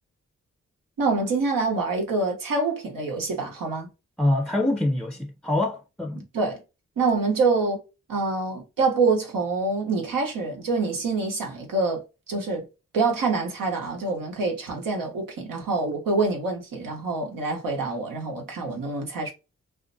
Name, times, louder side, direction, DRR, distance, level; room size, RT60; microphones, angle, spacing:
voice 1, 1.0-3.9 6.3-6.6 7.0-7.8 8.1-12.7 12.9-19.3, right 3 dB, 90° right, 0.9 m, -26 dB
voice 2, 4.2-6.2, left 1 dB, ahead, 0.4 m, -25 dB
2.4 x 2.1 x 2.5 m
cardioid pair, 40°, 32 cm